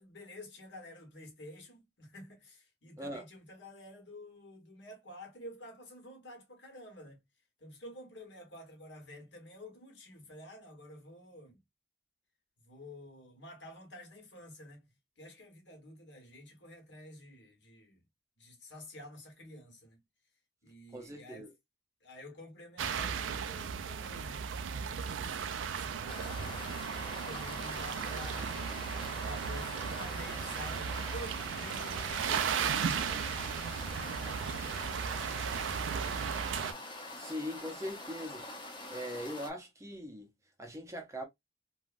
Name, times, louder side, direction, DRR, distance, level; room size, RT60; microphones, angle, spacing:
voice 1, 0.0-7.2 7.6-11.6 12.6-18.0 18.4-20.0 20.6-21.5 22.0-26.8 27.2-28.6 29.2-36.5, left 1 dB, 70° left, 1.3 m, -50 dB
voice 2, 20.9-21.5 37.2-38.5 38.9-40.3 40.6-41.2, equal, 15° right, 0.5 m, -41 dB
sound 1, 22.8-36.7, right 7 dB, 90° right, 0.4 m, -35 dB
sound 2, 26.1-39.5, left 2 dB, 25° left, 0.7 m, -45 dB
3.3 x 2.2 x 2.4 m
head